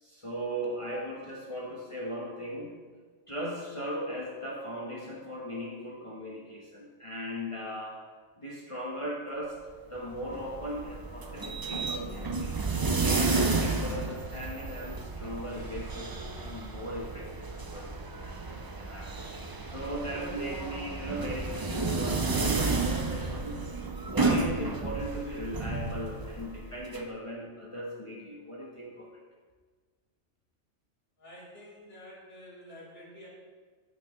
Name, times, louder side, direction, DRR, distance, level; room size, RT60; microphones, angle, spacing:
voice 1, 0.0-2.7 3.3-8.1 8.4-9.6 9.9-12.6 13.0-19.3 19.7-23.6 24.0-29.1, equal, 25° left, -3 dB, 1.1 m, -38 dB
sound 1, 9.9-27.0, right 3 dB, 35° right, 0.4 m, -32 dB
voice 2, 31.2-33.3, equal, 70° left, -9 dB, 3.6 m, -49 dB
15.5 x 6.0 x 3.1 m, 1.5 s
omnidirectional pair, 1.3 m